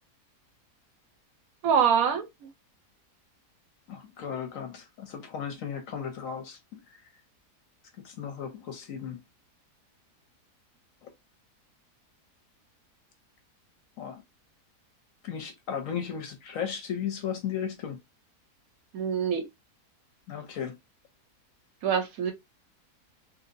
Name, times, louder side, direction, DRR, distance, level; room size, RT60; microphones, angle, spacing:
voice 1, 1.6-2.3 18.9-19.5 21.8-22.3, right 7 dB, 70° right, 1.0 m, -24 dB
voice 2, 3.9-7.0 8.0-9.2 11.0-11.1 14.0-14.2 15.2-18.0 20.3-20.8, left 8 dB, 65° left, 0.9 m, -35 dB
3.2 x 2.7 x 2.5 m
omnidirectional pair, 1.7 m